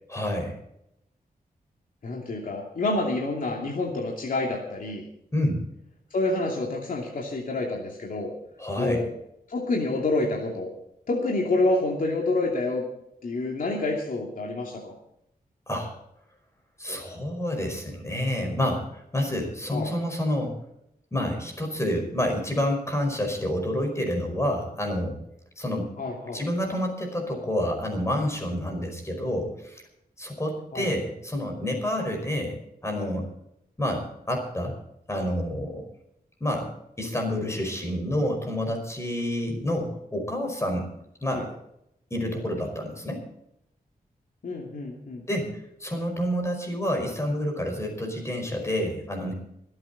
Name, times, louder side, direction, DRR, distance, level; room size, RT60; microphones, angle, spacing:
voice 1, 0.1-0.6 5.3-5.6 8.6-9.0 15.7-15.9 16.8-20.6 21.1-25.2 25.6-25.9 26.3-29.8 30.2-33.3 33.8-34.7 35.1-35.9 36.4-36.7 37.0-40.9 41.2-41.5 42.1-43.2 45.3-49.3, left 1 dB, 20° left, 3 dB, 5.1 m, -28 dB
voice 2, 2.0-5.0 6.1-8.3 8.8-9.1 9.5-10.7 11.1-12.8 13.2-14.9 19.7-19.9 26.0-26.4 30.7-30.9 41.3-41.4 44.4-45.2, left 2 dB, 65° left, -1 dB, 2.8 m, -28 dB
26.5 x 8.8 x 4.2 m, 0.77 s
wide cardioid pair, 120°, 16 cm